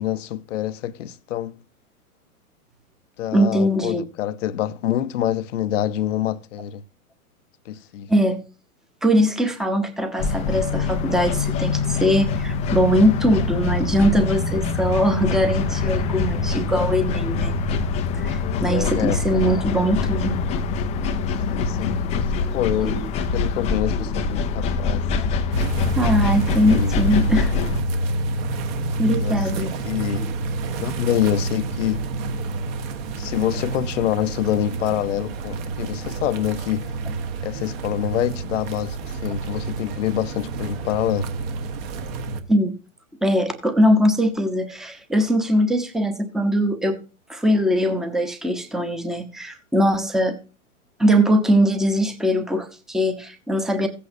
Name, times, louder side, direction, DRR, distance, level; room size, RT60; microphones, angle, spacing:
voice 1, 0.0-1.6 3.2-6.8 7.7-8.1 18.4-19.2 21.5-23.0 23.3-25.1 26.6-27.0 29.1-30.3 30.8-32.1 33.1-36.9 37.4-41.3, left 11 dB, 55° left, 0.8 m, -26 dB
voice 2, 3.3-4.0 8.1-8.4 9.0-17.6 18.1-20.4 22.4-23.0 26.0-27.5 29.0-29.8 30.1-30.3 42.5-42.8 43.2-47.0 47.3-50.4 51.0-53.9, equal, ahead, 0.9 m, -21 dB
sound 1, 10.2-27.8, left 4 dB, 15° left, 0.5 m, -24 dB
sound 2, 25.5-42.4, right 2 dB, 40° right, 1.4 m, -28 dB
16.0 x 8.5 x 2.7 m
hypercardioid pair, 125°, 44 cm